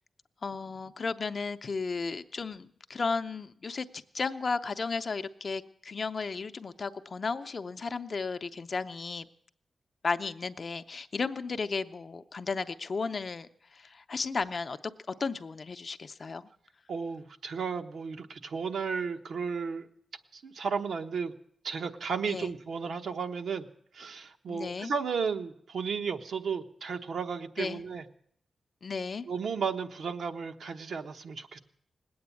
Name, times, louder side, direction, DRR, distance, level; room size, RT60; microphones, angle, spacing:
voice 1, 0.4-3.9 4.1-9.3 10.0-14.9 15.2-16.5 22.3-22.5 24.5-24.9 27.6-27.8 28.8-29.2, left 4 dB, 45° left, 10 dB, 0.6 m, -34 dB
voice 2, 16.9-19.9 20.3-21.3 21.6-23.7 23.9-28.1 29.3-31.6, right 5 dB, 75° right, 6 dB, 1.0 m, -34 dB
19.0 x 8.7 x 8.3 m, 0.67 s
wide cardioid pair, 115°, 0 cm